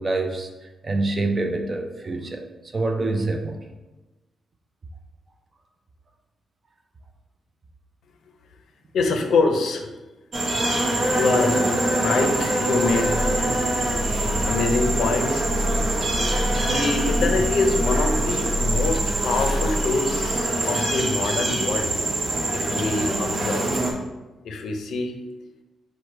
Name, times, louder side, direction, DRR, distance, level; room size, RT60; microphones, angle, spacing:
voice 1, 0.0-2.5 2.7-3.6, right 2 dB, 25° right, 5 dB, 0.4 m, -26 dB
voice 2, 8.9-9.9 11.1-13.1 14.5-15.5 16.6-22.0 22.5-23.7 24.4-25.2, left 3 dB, 70° left, 5 dB, 0.5 m, -25 dB
sound 1, 10.3-23.9, right 1 dB, 45° right, 0.8 m, -24 dB
sound 2, 12.7-20.5, equal, 5° left, 0.9 m, -28 dB
4.7 x 2.1 x 4.4 m, 1.1 s
wide cardioid pair, 155°, 0 cm